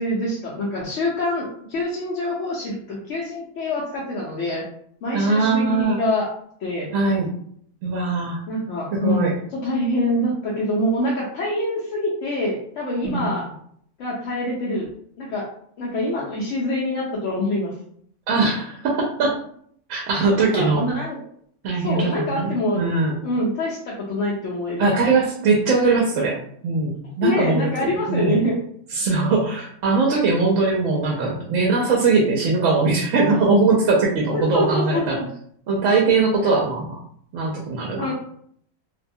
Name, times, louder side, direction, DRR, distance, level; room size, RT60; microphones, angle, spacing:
voice 1, 0.0-4.6 5.0-6.3 6.6-6.9 8.5-9.3 9.5-13.5 14.0-14.9 15.2-15.5 15.8-17.7 20.3-21.2 21.8-22.8 23.2-24.9 27.2-28.6 34.3-35.3 36.4-36.6 37.9-38.1, left 1 dB, 65° left, -5 dB, 0.8 m, -25 dB
voice 2, 5.1-6.0 6.9-7.3 7.8-8.4 8.9-9.3 13.0-13.3 18.3-19.3 19.9-20.8 21.6-23.2 24.8-26.4 26.6-28.4 28.9-35.2 35.7-37.0 37.3-38.1, right 3 dB, 70° right, -2 dB, 0.9 m, -21 dB
2.6 x 2.1 x 2.6 m, 0.64 s
omnidirectional pair, 1.6 m